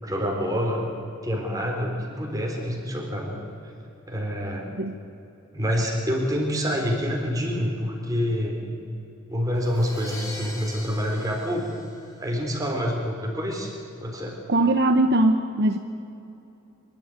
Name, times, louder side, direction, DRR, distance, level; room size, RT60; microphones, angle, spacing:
voice 1, 0.0-0.9 1.2-3.4 4.1-4.7 5.5-8.8 9.3-11.7 12.2-13.7 14.0-14.4, equal, 15° right, 0 dB, 3.8 m, -27 dB
Crash cymbal, 9.5-12.5, left 1 dB, 15° left, 3.9 m, -41 dB
voice 2, 14.5-15.8, right 1 dB, 55° right, 6 dB, 0.9 m, -20 dB
24.5 x 12.0 x 9.5 m, 2.8 s
head